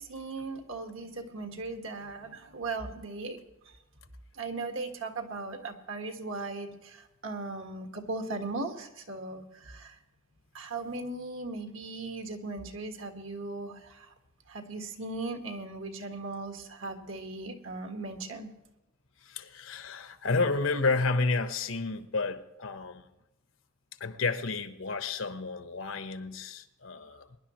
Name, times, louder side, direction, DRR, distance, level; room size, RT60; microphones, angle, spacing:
voice 1, 0.0-3.8 4.3-10.0 10.5-14.1 14.5-18.6, right 3 dB, 75° right, 1.6 m, -38 dB
voice 2, 19.2-23.1 24.0-27.4, left 3 dB, 75° left, 1.1 m, -31 dB
22.0 x 11.0 x 3.1 m
head